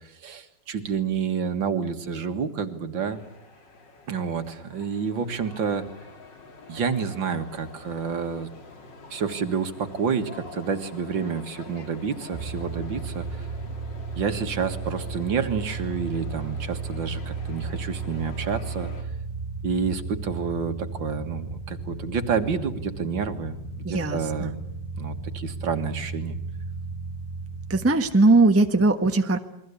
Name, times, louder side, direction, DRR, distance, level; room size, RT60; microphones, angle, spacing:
voice 1, 0.2-3.2 4.1-5.8 6.7-8.5 9.1-13.5 14.2-18.9 19.6-24.6 25.0-26.4, right 6 dB, 70° right, 7 dB, 2.5 m, -29 dB
sound 1, 3.1-19.0, left 3 dB, 60° left, 3.2 m, -46 dB
sound 2, 12.3-27.9, right 4 dB, 35° right, 3.7 m, -35 dB
voice 2, 23.8-24.5 27.7-29.4, right 2 dB, 10° right, 7 dB, 1.0 m, -20 dB
29.0 x 22.5 x 8.5 m, 0.80 s
omnidirectional pair, 2.2 m